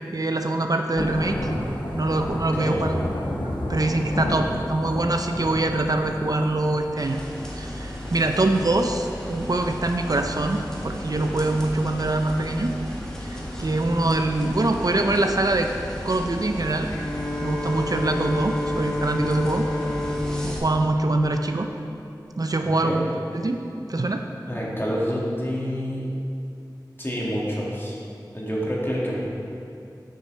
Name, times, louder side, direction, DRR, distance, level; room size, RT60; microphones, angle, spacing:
voice 1, 0.1-1.4 1.9-2.9 3.7-7.2 7.6-12.8 13.2-15.7 16.0-16.9 17.4-19.7 20.0-20.1 20.4-21.7 22.4-23.1 23.3-23.6 23.9-24.2, right 2 dB, 50° right, 5 dB, 0.5 m, -24 dB
Thunder / Rain, 1.0-6.9, left 1 dB, 80° left, 1.1 m, -30 dB
sound 1, 7.0-20.6, equal, 5° left, 1.7 m, -35 dB
Bowed string instrument, 16.9-22.1, left 1 dB, 45° left, 1.3 m, -30 dB
voice 2, 22.6-23.0 24.5-26.1 27.0-28.0 28.3-29.2, equal, 30° left, -5 dB, 2.0 m, -27 dB
7.4 x 5.8 x 5.5 m, 2.6 s
wide cardioid pair, 40°, 8 cm